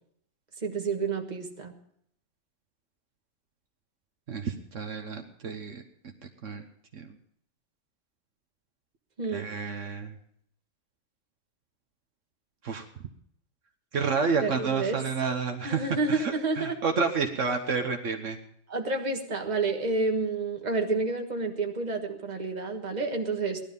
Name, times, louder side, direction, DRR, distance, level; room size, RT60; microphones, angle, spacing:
voice 1, 0.6-1.7 9.2-9.5 14.4-15.0 15.6-16.8 18.7-23.6, right 3 dB, 35° right, 3 dB, 1.7 m, -29 dB
voice 2, 4.3-5.8 6.2-6.6 6.9-7.1 9.3-10.1 12.6-12.8 13.9-18.4, right 5 dB, 70° right, 6 dB, 1.4 m, -30 dB
17.5 x 12.0 x 5.3 m, 0.69 s
omnidirectional pair, 1.4 m